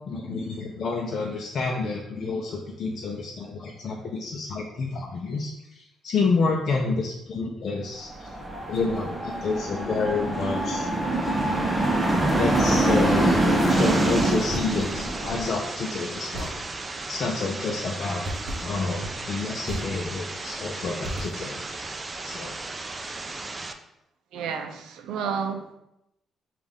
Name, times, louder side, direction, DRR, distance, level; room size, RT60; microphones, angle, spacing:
voice 1, 0.1-8.3 8.7-10.9 11.4-11.7 12.4-16.6 17.1-18.2 18.6-21.6 22.2-22.5, left 4 dB, 60° left, -1 dB, 0.5 m, -29 dB
sound 1, 8.1-15.5, right 1 dB, 10° right, 0.9 m, -24 dB
sound 2, 13.7-23.7, right 3 dB, 25° right, 0.4 m, -35 dB
sound 3, 14.4-15.0 16.3-17.1 18.2-20.4 21.0-21.8, right 1 dB, 50° right, 0.8 m, -37 dB
voice 2, 24.3-25.7, right 6 dB, 85° right, 6 dB, 0.4 m, -31 dB
5.3 x 2.4 x 3.5 m, 0.83 s
cardioid pair, 90°, 0 cm